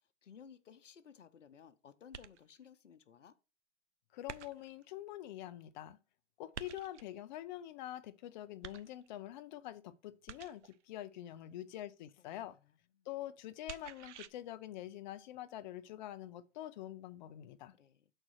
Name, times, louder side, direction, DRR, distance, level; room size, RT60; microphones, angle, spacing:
voice 1, 0.0-3.3 11.4-11.6 12.4-13.1 17.7-18.1, left 7 dB, 85° left, 0.9 m, -58 dB
sound 1, 2.1-2.7 4.3-4.9 6.5-7.2 8.6-9.3 10.3-10.8 13.7-14.3, right 9 dB, 75° right, 0.7 m, -49 dB
voice 2, 4.1-6.0 6.4-12.6 13.1-17.7, left 13 dB, 40° left, 0.7 m, -46 dB
6.1 x 4.4 x 6.3 m
hypercardioid pair, 130°, 36 cm